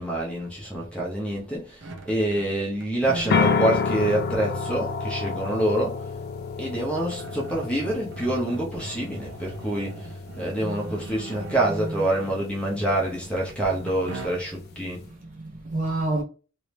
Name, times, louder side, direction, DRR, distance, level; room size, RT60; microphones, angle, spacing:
voice 1, 0.0-6.1 6.6-15.0, right 1 dB, 5° left, 0.7 m, -27 dB
sound 1, 1.8-2.5 2.8-3.6 4.3-4.4 6.4-6.5 6.9-12.6 13.9-14.7, right 1 dB, 60° right, 0.7 m, -39 dB
sound 2, 3.3-15.1, left 5 dB, 50° left, 0.3 m, -31 dB
voice 2, 15.1-16.2, right 2 dB, 40° right, 1.1 m, -30 dB
3.0 x 2.8 x 3.3 m
head